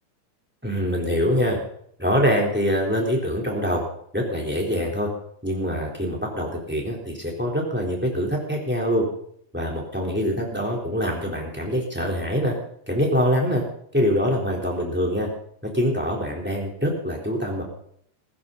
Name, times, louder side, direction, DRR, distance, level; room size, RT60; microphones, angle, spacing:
voice 1, 0.6-1.6 2.0-3.8 4.1-5.1 5.4-9.1 9.5-12.6 12.9-13.6 13.9-15.3 15.6-17.6, equal, 5° right, 0 dB, 3.3 m, -24 dB
16.5 x 15.0 x 4.0 m, 0.65 s
omnidirectional pair, 3.5 m